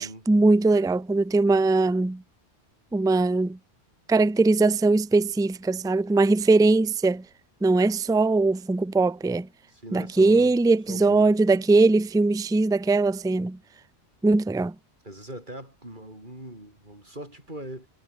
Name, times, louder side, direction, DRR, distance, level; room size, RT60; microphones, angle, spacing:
voice 1, 0.0-2.2 2.9-3.6 4.1-7.2 7.6-9.5 9.9-13.6 14.2-14.7, right 3 dB, 5° right, 0.4 m, -21 dB
voice 2, 9.7-10.6 10.9-11.6 15.0-17.9, right 1 dB, 45° right, 8.2 m, -41 dB
omnidirectional pair, 1.1 m